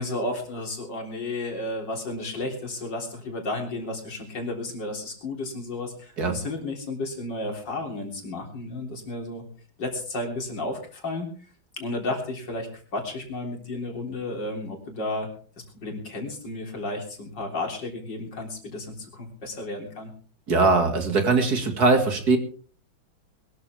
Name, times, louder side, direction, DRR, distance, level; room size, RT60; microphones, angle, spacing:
voice 1, 0.0-9.4 9.8-11.3 11.8-15.3 15.7-20.1, left 2 dB, 60° left, 2 dB, 4.1 m, -32 dB
voice 2, 20.5-22.4, right 3 dB, 50° right, 5 dB, 2.7 m, -21 dB
21.5 x 13.0 x 3.5 m, 0.42 s
omnidirectional pair, 2.2 m